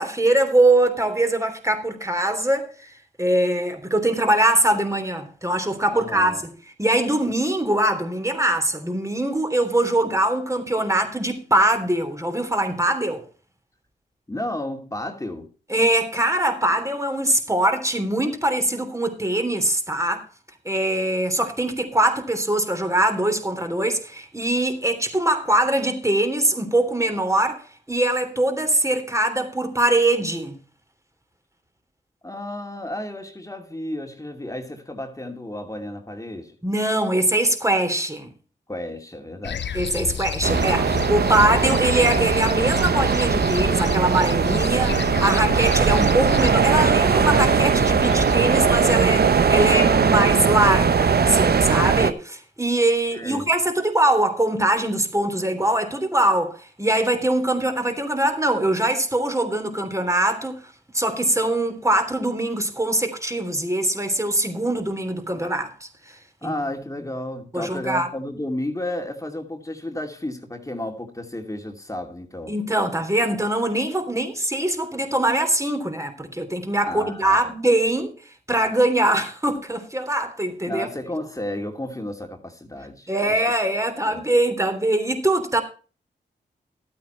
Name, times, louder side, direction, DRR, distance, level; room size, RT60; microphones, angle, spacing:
voice 1, 0.0-2.9 3.2-6.5 6.8-13.2 15.7-20.3 20.6-30.6 36.6-38.3 39.7-60.6 60.9-65.9 66.4-66.5 67.5-68.1 72.5-78.1 78.5-80.9 83.1-85.6, right 1 dB, 15° right, 3.3 m, -22 dB
voice 2, 5.9-6.4 14.3-15.5 32.2-36.6 38.7-39.8 53.1-53.5 66.4-72.5 76.8-77.5 80.6-83.4 84.1-84.2, left 1 dB, 15° left, 2.7 m, -32 dB
sound 1, 39.4-48.8, left 7 dB, 70° left, 0.8 m, -31 dB
sound 2, 40.4-52.1, right 6 dB, 55° right, 0.9 m, -20 dB
12.5 x 8.7 x 4.3 m
supercardioid pair, 40°, 19 cm